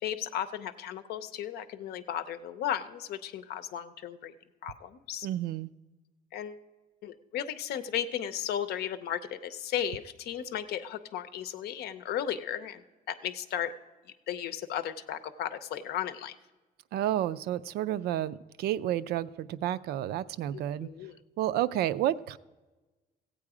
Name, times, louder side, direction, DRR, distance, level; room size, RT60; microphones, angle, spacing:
voice 1, 0.0-4.3 4.6-5.3 6.3-6.6 7.0-13.7 14.3-16.4 20.5-21.1, left 10 dB, 85° left, 11 dB, 0.7 m, -35 dB
voice 2, 5.2-5.7 16.9-20.9 21.4-22.4, right 12 dB, 85° right, 16 dB, 0.4 m, -30 dB
15.5 x 8.5 x 4.9 m, 1.2 s
cardioid pair, 150°, 16 cm